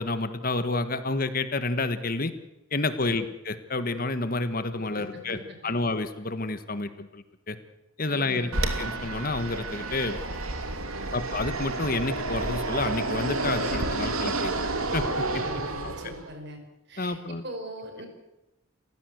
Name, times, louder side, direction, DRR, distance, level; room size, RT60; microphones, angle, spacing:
voice 1, 0.0-2.3 2.7-7.6 8.0-10.2 11.1-14.5 14.9-15.4 15.8-15.9 17.0-17.4, left 2 dB, 40° left, 11 dB, 1.3 m, -29 dB
voice 2, 5.0-5.7 8.1-8.6 10.9-11.2 15.4-16.6 16.9-18.1, equal, 50° right, 5 dB, 5.2 m, -41 dB
Fixed-wing aircraft airplane, 8.5-16.3, right 2 dB, 85° right, 2.9 m, -30 dB
29.5 x 15.5 x 7.9 m, 0.95 s
head